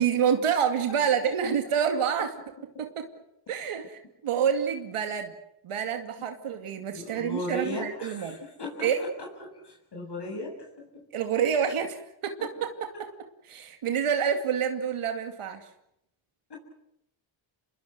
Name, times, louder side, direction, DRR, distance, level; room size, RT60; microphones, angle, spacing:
voice 1, 0.0-2.3 2.8-2.9 3.5-5.3 5.6-8.4 8.8-9.0 11.1-13.1 13.5-15.6, right 7 dB, 85° right, 6 dB, 2.5 m, -27 dB
voice 2, 6.9-9.1 9.4-11.0 12.4-12.5 16.5-16.6, left 1 dB, 55° left, 0 dB, 7.5 m, -37 dB
27.5 x 21.0 x 8.0 m, 0.82 s
cardioid pair, 80°, 49 cm